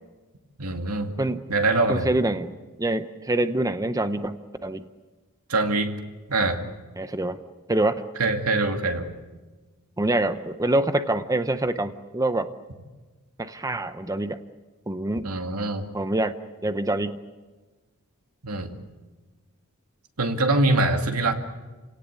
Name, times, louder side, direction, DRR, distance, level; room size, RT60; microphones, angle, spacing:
voice 1, 0.6-1.1 1.5-2.1 5.5-5.9 6.3-6.6 8.2-9.1 15.2-15.8 18.4-18.7 20.2-21.3, right 2 dB, 85° right, 5 dB, 2.3 m, -23 dB
voice 2, 1.9-2.5 2.8-4.8 7.0-7.4 7.7-8.0 10.0-12.5 13.4-14.4 14.9-15.3 15.9-16.4 16.6-17.2, right 1 dB, 15° right, 10 dB, 0.8 m, -25 dB
29.5 x 18.0 x 8.4 m, 1.3 s
head